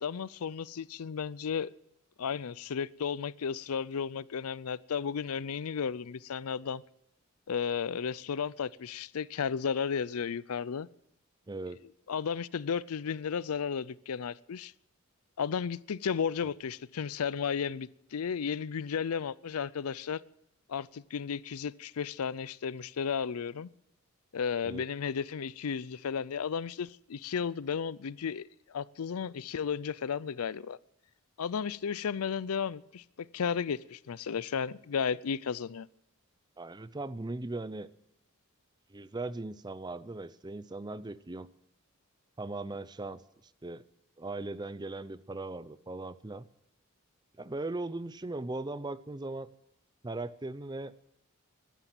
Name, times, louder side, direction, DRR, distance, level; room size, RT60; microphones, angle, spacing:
voice 1, 0.0-1.7 2.2-6.8 7.5-10.9 12.1-14.7 15.4-20.2 20.7-23.7 24.3-30.8 31.4-33.0 33.3-35.9, left 6 dB, 85° left, 0.5 m, -34 dB
voice 2, 11.5-11.8 24.6-24.8 36.6-37.9 38.9-41.5 42.4-43.2 43.6-43.8 44.2-46.4 47.4-49.5 50.0-50.9, right 2 dB, 20° right, 0.5 m, -38 dB
15.0 x 12.0 x 7.6 m
head